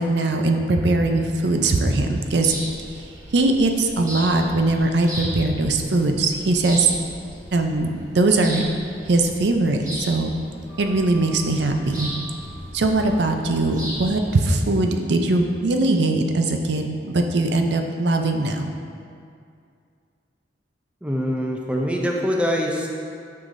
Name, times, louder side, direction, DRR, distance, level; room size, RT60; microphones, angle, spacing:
voice 1, 0.0-2.5 3.3-7.0 7.5-8.6 9.1-10.3 10.8-12.1 12.7-18.6, right 2 dB, 70° right, 4 dB, 0.5 m, -21 dB
sound 1, 1.0-14.5, right 1 dB, 45° right, 1.6 m, -37 dB
voice 2, 21.0-22.9, equal, 5° right, 0 dB, 0.4 m, -24 dB
9.0 x 5.7 x 2.6 m, 2.3 s
head